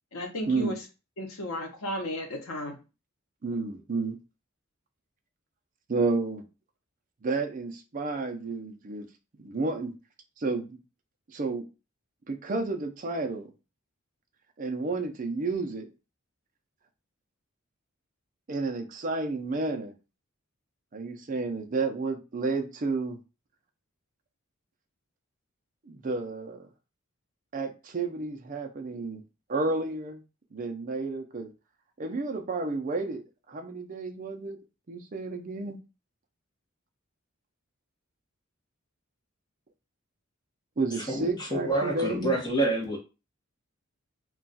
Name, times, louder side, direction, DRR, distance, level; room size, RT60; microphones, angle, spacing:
voice 1, 0.1-0.9 1.2-2.8, left 1 dB, 80° left, 0.8 m, -34 dB
voice 2, 3.4-4.2 5.9-6.4 7.2-9.1 9.4-9.9 10.4-10.8 11.3-11.6 12.3-13.5 14.6-15.9 18.5-19.9 20.9-23.2 25.9-26.7 27.5-29.2 29.5-30.2 30.5-31.5 32.0-33.2 33.5-34.6 34.9-35.8 40.8-42.3, right 3 dB, 40° right, 0.5 m, -31 dB
voice 3, 41.0-43.0, right 2 dB, 20° left, 0.9 m, -28 dB
2.3 x 2.3 x 4.0 m
head